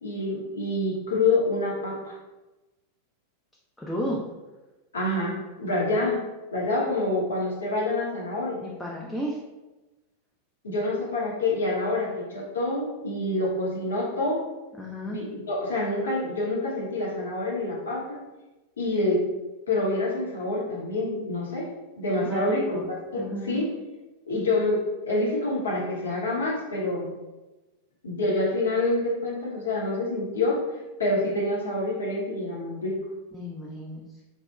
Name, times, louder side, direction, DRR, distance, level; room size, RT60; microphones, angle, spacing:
voice 1, 0.0-2.1 4.9-6.2 6.5-8.6 10.6-14.4 15.1-18.2 18.8-19.2 19.7-21.7 22.0-22.8 23.1-23.7 24.3-27.1 28.0-30.6 31.0-33.0, left 2 dB, 70° left, -4 dB, 0.6 m, -27 dB
voice 2, 3.8-4.2 8.6-9.4 14.8-15.2 22.2-22.8 23.2-23.6 33.3-34.0, equal, 5° left, -4 dB, 0.3 m, -32 dB
2.7 x 2.0 x 2.2 m, 1.1 s
figure-of-eight pair, 90°, 0 cm